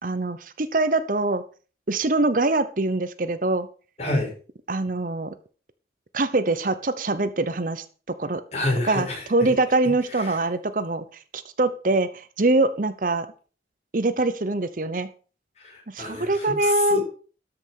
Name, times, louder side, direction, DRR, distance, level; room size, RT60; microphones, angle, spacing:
voice 1, 0.0-1.4 1.9-3.7 4.7-5.3 6.1-8.4 8.9-13.3 13.9-15.1 15.9-17.0, right 2 dB, 50° right, 12 dB, 0.8 m, -24 dB
voice 2, 4.0-4.3 8.5-9.5 10.2-10.4 15.6-17.0, left 2 dB, 35° left, 0 dB, 4.8 m, -28 dB
13.0 x 6.1 x 6.3 m, 0.38 s
head